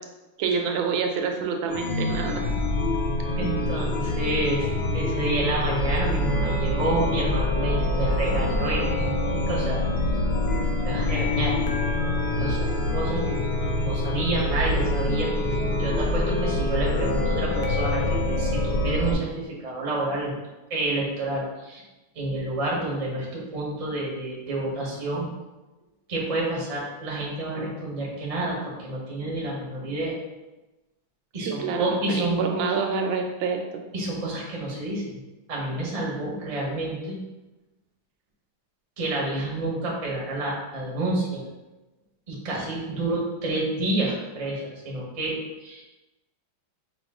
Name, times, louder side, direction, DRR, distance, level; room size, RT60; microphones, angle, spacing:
voice 1, 0.4-2.5 31.4-33.6, right 5 dB, 85° right, 3 dB, 1.4 m, -27 dB
Chime, 1.7-19.1, left 1 dB, 70° left, 1.2 m, -25 dB
voice 2, 3.4-4.7 4.9-9.1 9.5-9.8 10.8-11.5 12.0-13.5 13.8-20.3 20.7-21.8 22.1-25.3 26.1-30.1 31.3-32.7 33.9-35.2 35.5-37.2 39.0-41.4 42.3-45.8, right 2 dB, 35° right, -3 dB, 0.5 m, -29 dB
5.3 x 2.3 x 3.5 m, 1.1 s
omnidirectional pair, 2.2 m